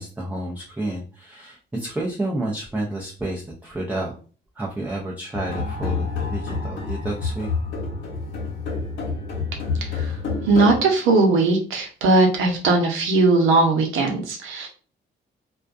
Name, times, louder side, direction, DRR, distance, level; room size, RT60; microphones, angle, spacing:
voice 1, 0.0-4.1 4.6-7.5, right 1 dB, 10° right, -2 dB, 0.5 m, -30 dB
sound 1, 5.3-10.8, left 4 dB, 70° left, 1.0 m, -28 dB
voice 2, 9.8-10.1 10.5-14.7, right 3 dB, 85° right, 2 dB, 0.8 m, -19 dB
2.5 x 2.2 x 2.4 m, 0.39 s
cardioid pair, 90°, 20 cm